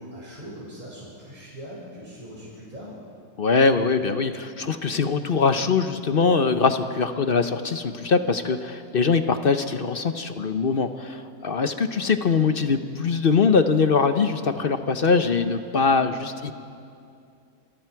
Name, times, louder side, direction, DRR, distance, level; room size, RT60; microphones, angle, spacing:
voice 1, 0.0-3.0, equal, 30° right, -7 dB, 5.8 m, -41 dB
voice 2, 3.4-16.5, left 5 dB, 45° left, 8 dB, 0.9 m, -22 dB
27.0 x 21.0 x 4.7 m, 2.4 s
omnidirectional pair, 1.6 m